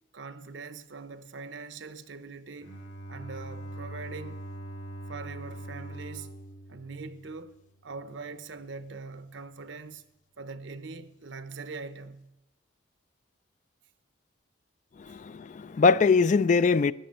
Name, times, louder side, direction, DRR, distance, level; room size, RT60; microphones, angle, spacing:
voice 1, 0.1-2.8 3.1-4.4 5.1-6.3 6.7-7.6 7.8-10.0 10.4-12.3, right 4 dB, 70° right, 0.8 m, -42 dB
Bowed string instrument, 2.6-7.8, right 1 dB, 85° left, 4.6 m, -42 dB
voice 2, 15.1-16.9, left 4 dB, 40° left, 0.3 m, -22 dB
13.5 x 10.0 x 5.4 m
head